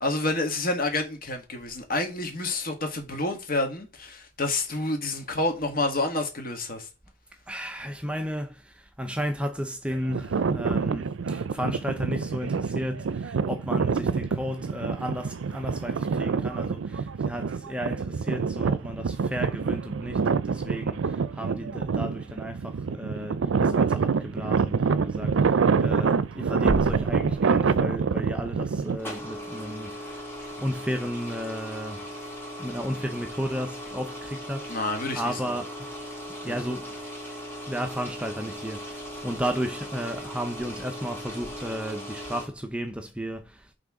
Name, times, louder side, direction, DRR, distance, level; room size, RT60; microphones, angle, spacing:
voice 1, 0.0-6.9 34.7-35.3 36.5-36.6, left 2 dB, 50° left, 1.8 m, -28 dB
voice 2, 7.5-30.2 30.6-32.1 32.6-35.9 36.4-36.9 37.7-43.7, equal, 5° right, 0.6 m, -33 dB
sound 1, 9.9-29.0, right 5 dB, 85° right, 0.5 m, -26 dB
sound 2, 28.8-42.5, equal, 10° left, 2.3 m, -38 dB
6.1 x 3.7 x 4.8 m
head